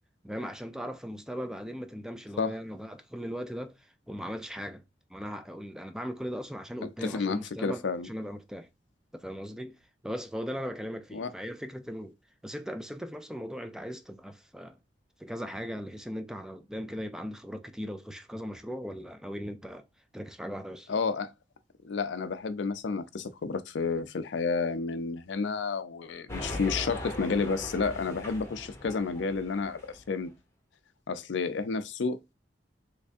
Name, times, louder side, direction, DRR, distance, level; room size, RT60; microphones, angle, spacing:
voice 1, 0.2-4.8 5.1-8.7 9.1-12.2 12.4-14.8 15.2-19.8 20.1-21.0, equal, 5° right, 0.4 m, -38 dB
voice 2, 7.0-8.1 11.1-11.3 20.9-21.3 21.8-30.3 31.1-32.3, left 4 dB, 70° left, 0.5 m, -31 dB
sound 1, 26.3-30.1, left 1 dB, 15° left, 0.9 m, -40 dB
3.4 x 3.2 x 2.5 m
head